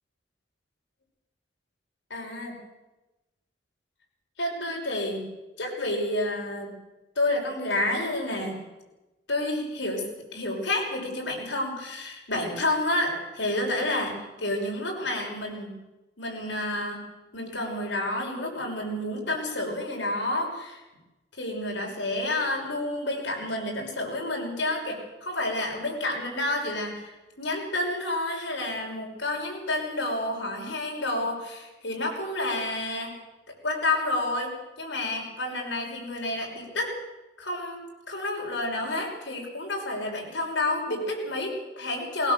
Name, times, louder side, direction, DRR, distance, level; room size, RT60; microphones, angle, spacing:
voice 1, 2.1-2.6 4.4-5.2 5.6-6.7 7.2-8.6 9.3-15.8 16.2-17.1 17.3-20.8 21.3-33.1 33.6-36.9 37.4-42.3, left 1 dB, 85° left, 0 dB, 5.9 m, -30 dB
21.0 x 18.0 x 7.6 m, 1.1 s
head